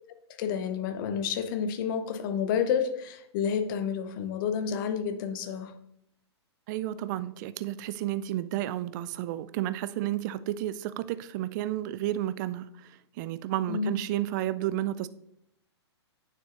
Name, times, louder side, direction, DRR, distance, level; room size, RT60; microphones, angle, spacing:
voice 1, 0.4-5.7 13.7-14.0, left 7 dB, 50° left, 10 dB, 0.8 m, -30 dB
voice 2, 6.7-15.1, right 13 dB, 45° right, 14 dB, 0.4 m, -32 dB
8.9 x 6.7 x 2.5 m, 0.76 s
hypercardioid pair, 125°, 14 cm